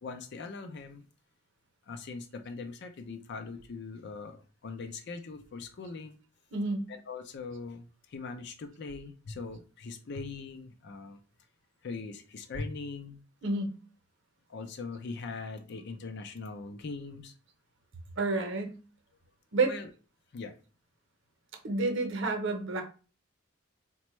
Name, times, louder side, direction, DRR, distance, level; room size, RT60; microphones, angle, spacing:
voice 1, 0.0-1.1 1.9-6.2 6.9-11.2 11.8-13.2 14.5-17.3 19.6-19.9 20.3-20.5, left 4 dB, 55° left, 7 dB, 0.5 m, -41 dB
voice 2, 6.5-6.9 13.4-13.7 18.2-18.8 19.5-19.8 21.6-22.8, right 3 dB, 60° right, 4 dB, 0.7 m, -29 dB
4.1 x 2.2 x 3.0 m, 0.36 s
head